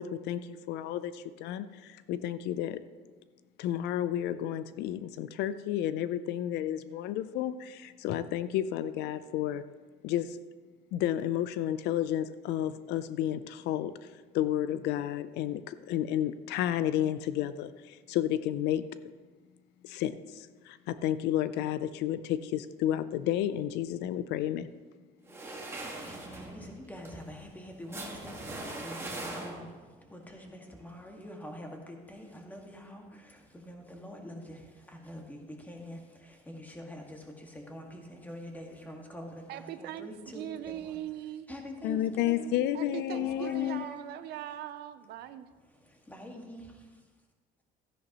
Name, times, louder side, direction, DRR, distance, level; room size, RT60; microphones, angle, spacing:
voice 1, 0.0-2.8 3.6-9.6 10.0-10.4 10.9-18.9 19.8-24.7 41.8-43.8, left 11 dB, 85° left, 0.5 m, -31 dB
sound 1, 25.3-29.9, right 2 dB, 15° right, 1.7 m, -41 dB
voice 2, 25.4-41.0 41.5-42.8 43.1-44.1 45.6-46.9, equal, 10° left, 1.8 m, -46 dB
voice 3, 39.5-41.5 42.7-45.5, right 12 dB, 75° right, 0.6 m, -40 dB
13.5 x 10.0 x 3.0 m
cardioid pair, 110°, 17 cm